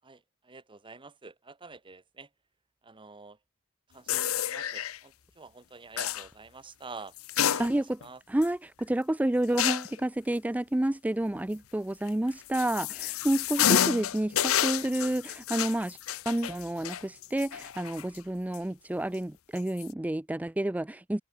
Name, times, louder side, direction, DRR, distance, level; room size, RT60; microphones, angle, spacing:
voice 1, 0.0-2.3 2.8-3.4 3.9-7.1 7.5-8.2, right 4 dB, 25° right, 1.2 m, -48 dB
sound 1, 4.1-5.0 6.0-6.3 7.2-8.0 8.4-8.5 9.6-10.0 12.1-18.2 18.5-18.6 19.6-19.9, left 10 dB, 80° left, 0.7 m, -29 dB
voice 2, 7.6-8.0 8.3-16.0 16.3-21.2, right 1 dB, 5° right, 0.4 m, -30 dB
head